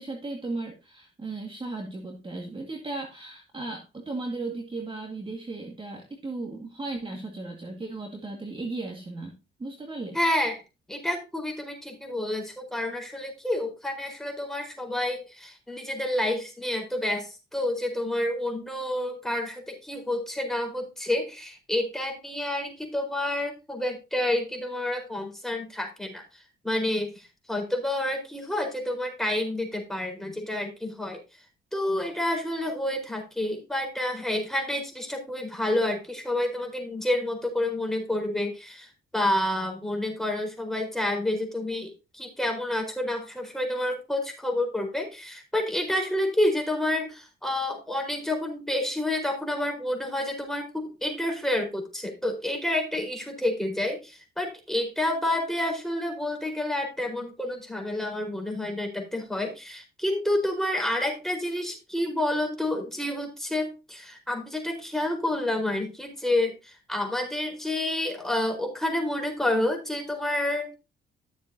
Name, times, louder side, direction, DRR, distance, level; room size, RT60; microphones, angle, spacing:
voice 1, 0.0-10.2, right 2 dB, 25° right, 2 dB, 2.0 m, -36 dB
voice 2, 10.1-10.6 10.9-31.2 31.7-70.7, left 1 dB, ahead, 1 dB, 4.4 m, -29 dB
14.0 x 7.4 x 2.8 m, 0.28 s
cardioid pair, 90°, 20 cm